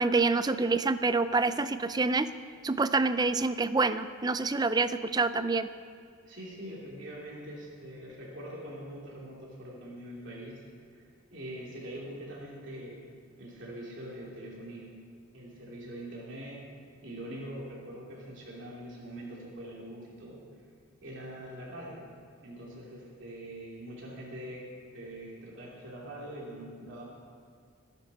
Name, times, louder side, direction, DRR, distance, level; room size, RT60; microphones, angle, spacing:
voice 1, 0.0-2.3 2.6-5.7, right 3 dB, 20° right, 12 dB, 0.5 m, -27 dB
voice 2, 6.2-11.0 11.3-13.1 13.4-14.9 15.3-16.6 17.0-20.4 21.0-22.0 22.4-24.6 24.9-27.0, right 1 dB, 65° right, -4 dB, 3.1 m, -43 dB
25.0 x 10.5 x 4.3 m, 2.1 s
head